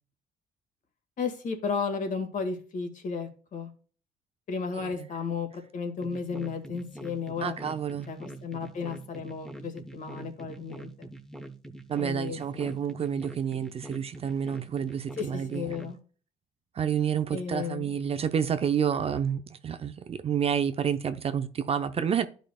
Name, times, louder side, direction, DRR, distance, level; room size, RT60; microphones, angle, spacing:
voice 1, 1.2-3.7 4.5-7.6 8.1-11.1 12.0-12.8 15.2-16.0 17.3-18.0, left 5 dB, 50° left, 1.8 m, -34 dB
voice 2, 4.7-5.1 7.4-8.1 11.9-15.8 16.7-22.3, right 8 dB, 35° right, 0.6 m, -29 dB
sound 1, 6.0-15.9, right 1 dB, ahead, 0.9 m, -44 dB
11.5 x 5.1 x 2.3 m
cardioid pair, 110°, 17 cm